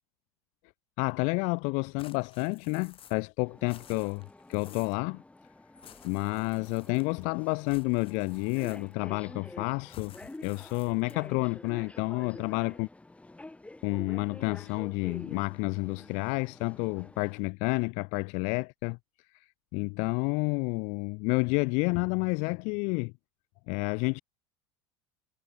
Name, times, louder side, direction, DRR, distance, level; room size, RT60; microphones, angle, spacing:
voice 1, 1.0-4.2 4.5-5.2 6.0-12.9 13.8-19.0 19.3-19.5 19.7-23.1 23.7-24.2, left 33 dB, 60° left, 0.4 m, -30 dB
sound 1, 2.0-3.3 3.6-5.0 5.8-7.2 7.6-9.1 9.9-11.3, left 10 dB, 40° left, 2.8 m, -55 dB
sound 2, 3.5-17.4, left 2 dB, 10° left, 2.2 m, -49 dB
hypercardioid pair, 85°, 14 cm